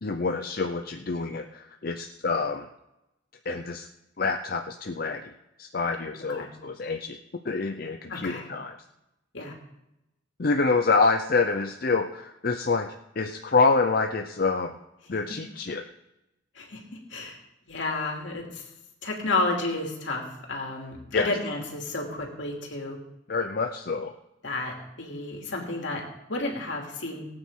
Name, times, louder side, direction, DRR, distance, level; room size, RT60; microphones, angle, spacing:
voice 1, 0.0-2.7 3.4-3.9 4.2-5.3 5.6-7.2 7.4-8.7 10.4-14.7 15.1-15.8 21.1-21.3 23.3-24.1, left 4 dB, 50° left, 5 dB, 0.7 m, -26 dB
voice 2, 8.1-8.4 9.3-9.5 16.5-17.4 17.7-18.7 19.0-23.0 24.4-26.0 26.3-27.2, left 2 dB, 70° left, 0 dB, 2.8 m, -31 dB
18.5 x 8.9 x 3.7 m, 0.90 s
head